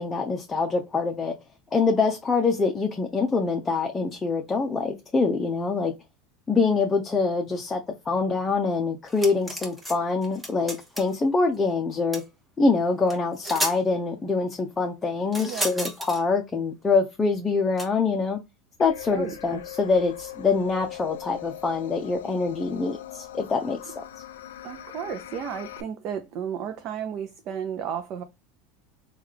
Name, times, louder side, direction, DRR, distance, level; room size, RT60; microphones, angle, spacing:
voice 1, 0.0-1.3 1.7-5.9 6.5-12.2 12.6-18.4 18.8-24.2, left 4 dB, 20° left, 0.6 m, -25 dB
sound 1, 9.1-9.9 10.2-11.1 12.1-12.2 13.1-13.2 13.4-13.8 15.3-16.2 17.8-17.9, right 1 dB, 10° right, 1.0 m, -32 dB
sound 2, 18.8-25.8, left 13 dB, 85° left, 0.4 m, -41 dB
voice 2, 19.1-19.6 24.6-28.2, right 8 dB, 50° right, 0.5 m, -33 dB
3.1 x 2.3 x 3.6 m
hypercardioid pair, 100°, 0 cm